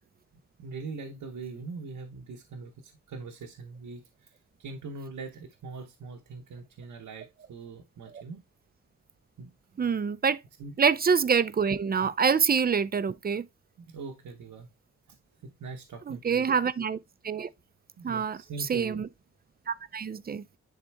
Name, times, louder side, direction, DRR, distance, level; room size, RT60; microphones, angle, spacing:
voice 1, 0.6-4.3 4.6-8.4 9.4-9.5 10.6-10.7 12.0-12.1 13.8-14.7 15.1-15.2 15.4-16.5 18.0-19.1, right 4 dB, 90° right, 1.1 m, -42 dB
voice 2, 9.8-10.4 10.8-13.4 16.1-17.0 17.2-17.5 18.0-18.4 18.7-19.1 19.7-20.4, right 6 dB, 30° right, 0.5 m, -26 dB
10.5 x 3.7 x 3.4 m
wide cardioid pair, 125°, 31 cm